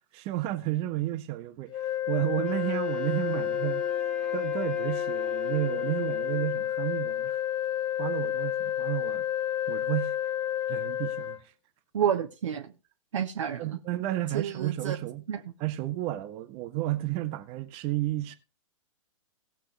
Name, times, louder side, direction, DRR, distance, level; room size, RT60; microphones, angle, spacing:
voice 1, 0.2-3.8 4.3-7.4 8.0-9.2 9.7-10.2 10.7-11.4 13.6-15.3 15.6-18.3, right 15 dB, 35° right, 1.3 m, -32 dB
sound 1, 1.7-11.4, left 11 dB, 25° left, 0.7 m, -30 dB
Wind instrument woodwind instrument, 2.4-6.6, right 3 dB, 5° left, 1.3 m, -42 dB
voice 2, 11.9-12.7 13.1-13.8 14.3-15.0 15.3-15.4, right 9 dB, 60° right, 1.2 m, -29 dB
18.0 x 7.3 x 3.3 m
figure-of-eight pair, 110°, 18 cm